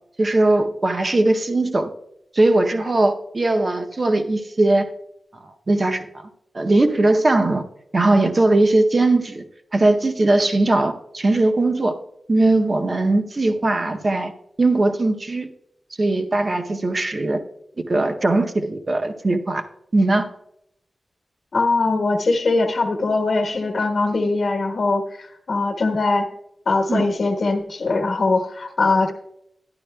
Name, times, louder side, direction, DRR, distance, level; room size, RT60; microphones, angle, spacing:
voice 1, 0.2-1.9 2.3-4.9 5.4-6.1 6.5-7.6 7.9-9.4 9.7-12.0 12.3-14.3 14.6-15.5 16.0-17.4 17.9-19.6 19.9-20.3 26.9-27.0, right 2 dB, 30° right, 6 dB, 0.6 m, -19 dB
voice 2, 21.5-26.3 26.7-29.1, left 3 dB, 55° left, 3 dB, 1.1 m, -21 dB
11.5 x 10.5 x 2.2 m, 0.78 s
wide cardioid pair, 160°, 0 cm